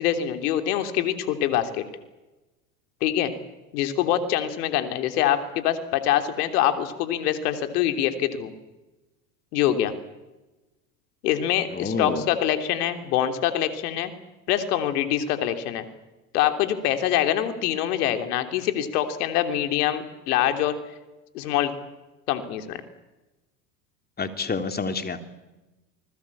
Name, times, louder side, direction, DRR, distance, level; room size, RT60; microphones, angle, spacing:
voice 1, 0.0-1.8 3.0-3.3 3.7-8.5 9.5-10.0 11.2-14.1 14.5-15.9 16.3-20.7 21.3-21.7 22.3-22.8, left 11 dB, 70° left, 8 dB, 3.3 m, -24 dB
voice 2, 11.7-12.2 24.2-25.2, left 4 dB, 20° left, 8 dB, 3.2 m, -28 dB
28.5 x 20.5 x 8.6 m, 1.1 s
hypercardioid pair, 95°, 48 cm